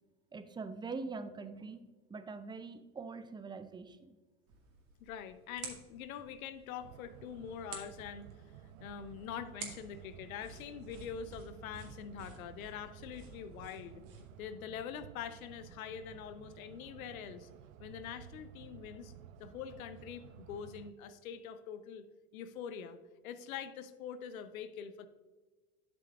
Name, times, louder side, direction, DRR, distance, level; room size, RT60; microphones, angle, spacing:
voice 1, 0.3-4.2, right 4 dB, 10° right, 11 dB, 0.4 m, -44 dB
sound 1, 4.5-14.5, right 5 dB, 50° right, 2.1 m, -52 dB
voice 2, 5.0-8.3 8.8-14.0 14.4-17.5 17.8-19.1 19.4-22.0 22.3-23.0 23.2-25.1, left 8 dB, 75° left, 12 dB, 0.8 m, -44 dB
sound 2, 6.8-20.9, right 11 dB, 70° right, 0.5 m, -54 dB
11.5 x 6.0 x 2.4 m, 1.3 s
hypercardioid pair, 80°, 42 cm